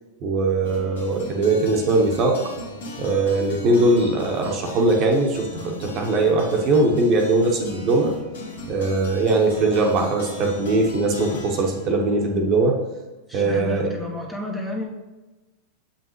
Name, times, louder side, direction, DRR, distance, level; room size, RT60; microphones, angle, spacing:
voice 1, 0.2-2.4 3.0-8.2 8.7-12.8 13.3-13.9, right 2 dB, 40° right, 1 dB, 1.2 m, -20 dB
sound 1, 0.6-12.9, left 1 dB, 70° left, 1.3 m, -39 dB
voice 2, 13.3-14.9, left 2 dB, 5° left, -2 dB, 1.2 m, -31 dB
7.2 x 5.7 x 3.2 m, 1.1 s
figure-of-eight pair, 90°, 0 cm